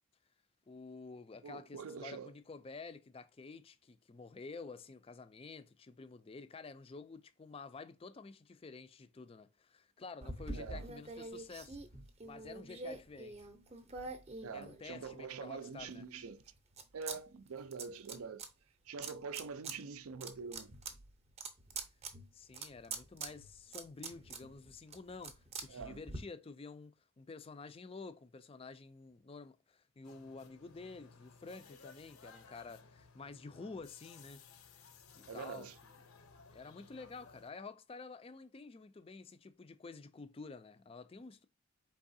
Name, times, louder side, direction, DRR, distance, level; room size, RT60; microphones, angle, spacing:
voice 1, 0.7-11.8 12.2-13.5 14.5-16.1 22.3-34.4 34.7-35.7 36.5-41.5, left 4 dB, 25° left, 0.3 m, -50 dB
voice 2, 1.4-2.3 10.5-10.9 14.4-16.4 16.9-18.5 18.9-20.7 25.7-26.0 35.3-35.8, right 5 dB, 75° right, 0.4 m, -45 dB
sound 1, 10.2-15.3 15.8-17.2 17.4-18.5 19.0-19.8 20.1-26.2, right 3 dB, 30° right, 0.6 m, -46 dB
sound 2, 30.0-37.5, left 5 dB, 70° left, 0.7 m, -59 dB
4.7 x 3.5 x 2.6 m
head